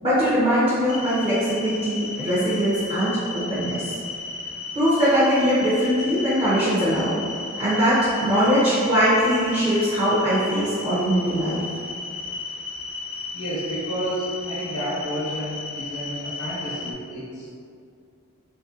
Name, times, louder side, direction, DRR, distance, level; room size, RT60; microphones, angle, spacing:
voice 1, 0.0-3.9 4.7-7.2 7.6-11.6, equal, 30° right, -11 dB, 0.6 m, -21 dB
sound 1, 0.9-16.9, left 3 dB, 65° left, 0.3 m, -34 dB
voice 2, 13.3-17.5, equal, 85° left, -9 dB, 0.8 m, -30 dB
3.1 x 2.6 x 2.4 m, 2.3 s
head